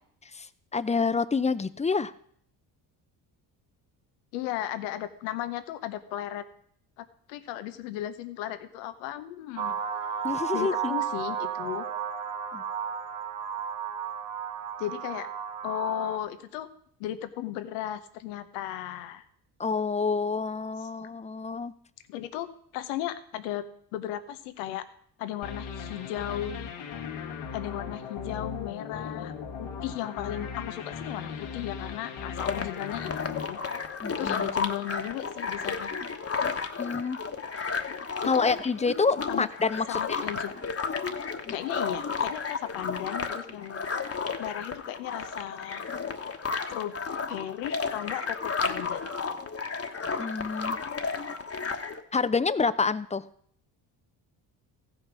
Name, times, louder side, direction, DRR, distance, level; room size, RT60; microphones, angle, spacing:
voice 1, 0.7-2.1 10.2-10.9 12.5-12.6 19.6-21.7 34.0-34.5 36.8-37.2 38.2-40.2 50.2-50.8 52.1-53.2, left 4 dB, 15° left, 14 dB, 0.6 m, -27 dB
voice 2, 4.3-6.4 7.0-9.8 10.5-11.9 14.8-15.3 15.6-16.7 17.0-19.2 22.1-22.5 22.7-23.6 23.9-24.8 25.2-26.6 27.5-33.6 34.2-35.9 38.3-38.5 39.3-39.5 39.9-40.5 41.5-43.8 44.4-45.8 46.7-46.9 47.3-49.1, left 12 dB, 90° left, 11 dB, 1.0 m, -35 dB
sound 1, 9.6-16.2, right 7 dB, 80° right, 1.5 m, -33 dB
sound 2, 25.4-34.5, left 6 dB, 75° left, 1.7 m, -38 dB
sound 3, 32.4-52.0, left 5 dB, 30° left, 1.3 m, -33 dB
15.0 x 5.6 x 6.1 m, 0.63 s
supercardioid pair, 65°, 48 cm